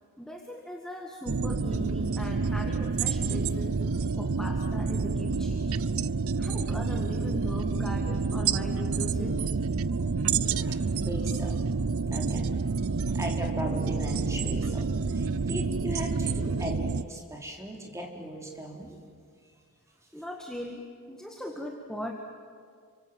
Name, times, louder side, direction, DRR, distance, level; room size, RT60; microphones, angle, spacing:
voice 1, 0.2-3.8 4.2-5.9 6.4-9.4 20.1-22.1, left 1 dB, 5° left, 1 dB, 1.7 m, -39 dB
sound 1, 1.3-17.0, right 4 dB, 75° right, 0.6 m, -28 dB
voice 2, 10.3-11.7 12.1-12.6 13.1-19.0 19.4-19.5 20.0-20.1, right 1 dB, 15° right, 1 dB, 3.7 m, -38 dB
30.0 x 24.5 x 7.7 m, 2.2 s
head